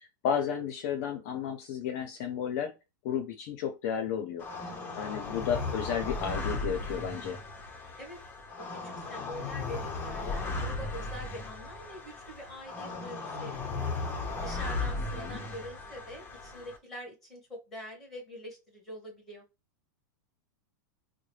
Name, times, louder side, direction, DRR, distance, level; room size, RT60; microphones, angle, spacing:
voice 1, 0.0-2.7 3.0-4.5 5.0-7.4 15.1-15.4, left 8 dB, 50° left, 6 dB, 0.7 m, -33 dB
sound 1, 4.4-16.8, left 3 dB, 20° left, 0.8 m, -36 dB
voice 2, 8.6-14.0 14.4-19.4, equal, 5° left, 0 dB, 2.1 m, -45 dB
3.8 x 2.1 x 3.2 m, 0.26 s
supercardioid pair, 155°, 11 cm